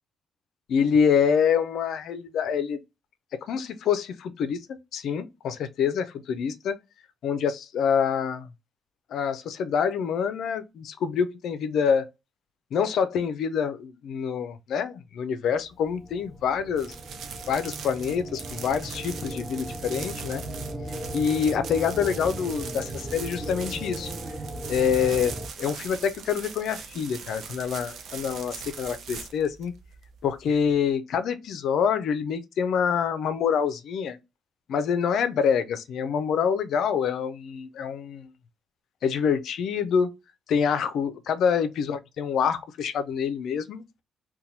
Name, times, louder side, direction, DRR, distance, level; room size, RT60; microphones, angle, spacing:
voice 1, 0.7-2.8 3.4-4.6 4.9-6.8 7.2-8.5 9.1-12.1 12.7-16.9 17.5-20.4 21.1-24.1 24.7-29.7 30.2-34.2 34.7-38.3 39.0-40.2 40.5-43.8, left 7 dB, 75° left, 0.4 m, -26 dB
sound 1, 15.6-25.5, right 1 dB, 20° right, 0.5 m, -37 dB
sound 2, 16.7-30.7, right 6 dB, 70° right, 0.6 m, -41 dB
2.8 x 2.2 x 3.9 m
cardioid pair, 90°, 0 cm